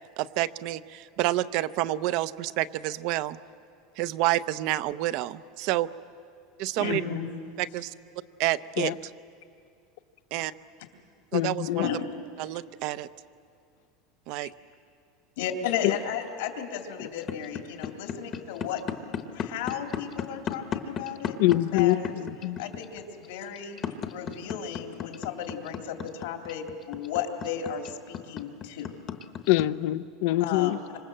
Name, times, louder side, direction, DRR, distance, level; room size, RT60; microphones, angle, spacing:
voice 1, 0.2-3.4 4.0-5.9 6.6-7.0 7.6-7.9 8.4-8.9 10.3-10.5 11.3-11.9 12.4-13.1 14.3-14.5, right 15 dB, 45° right, 16 dB, 0.6 m, -28 dB
voice 2, 6.8-7.3 11.7-12.1 14.4-14.5 15.4-21.4 21.7-22.2 22.6-23.8 24.1-28.9 30.4-31.0, left 8 dB, 80° left, 4 dB, 3.0 m, -34 dB
voice 3, 11.3-11.8 21.4-22.6 29.5-30.8, left 15 dB, 60° left, 15 dB, 0.6 m, -24 dB
sound 1, 17.2-29.6, left 8 dB, 25° left, 1.0 m, -33 dB
26.5 x 26.0 x 7.8 m, 2.4 s
supercardioid pair, 175°, 0 cm